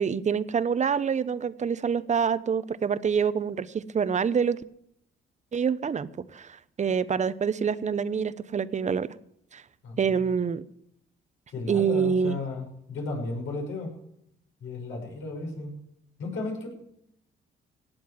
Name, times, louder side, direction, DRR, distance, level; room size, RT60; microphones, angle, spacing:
voice 1, 0.0-4.6 5.5-9.1 9.5-9.6 10.0-10.6 11.7-12.4, right 6 dB, 35° right, 0.9 m, -26 dB
voice 2, 9.8-10.4 11.5-13.9 14.6-15.7 16.2-16.7, left 3 dB, 80° left, 6.1 m, -34 dB
17.5 x 7.9 x 7.7 m
cardioid pair, 90°, 20 cm